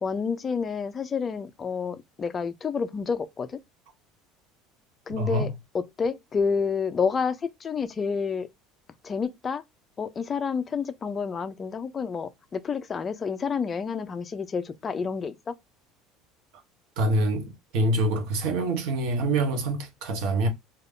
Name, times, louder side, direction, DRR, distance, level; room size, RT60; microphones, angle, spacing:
voice 1, 0.0-3.6 5.1-8.5 9.0-9.6 10.0-15.6, left 5 dB, 20° left, 0.3 m, -29 dB
voice 2, 5.1-5.5 17.0-20.5, right 2 dB, 65° right, 0.8 m, -25 dB
2.4 x 2.3 x 3.5 m
cardioid pair, 150°, 0 cm